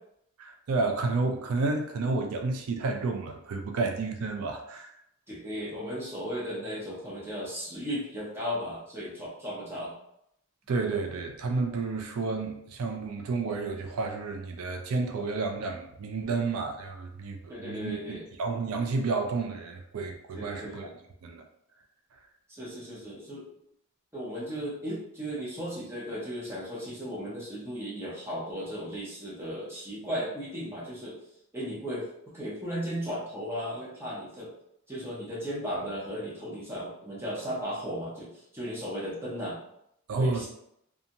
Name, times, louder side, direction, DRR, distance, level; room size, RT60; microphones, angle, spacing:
voice 1, 0.4-4.9 10.7-18.0 18.4-20.9 21.2-21.4 40.1-40.5, right 3 dB, 85° right, 4 dB, 0.4 m, -31 dB
voice 2, 5.3-9.9 17.5-18.2 20.3-20.9 22.5-23.5 24.1-31.2 31.5-32.1 32.3-34.5 34.9-39.6 40.2-40.5, equal, 10° right, -6 dB, 0.8 m, -36 dB
2.7 x 2.4 x 2.6 m, 0.76 s
head